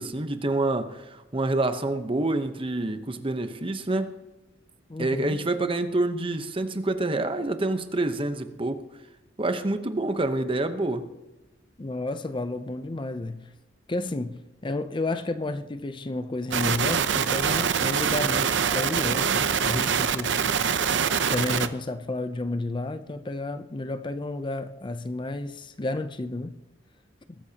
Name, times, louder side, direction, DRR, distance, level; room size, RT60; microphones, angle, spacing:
voice 1, 0.0-4.1 5.0-8.8 9.4-11.1, right 2 dB, 30° right, 0.9 m, -27 dB
voice 2, 4.9-5.4 11.8-13.5 13.9-20.5 21.3-26.5, left 2 dB, 25° left, 0.5 m, -31 dB
sound 1, 16.5-21.7, right 7 dB, 75° right, 0.7 m, -24 dB
21.5 x 13.5 x 2.9 m
head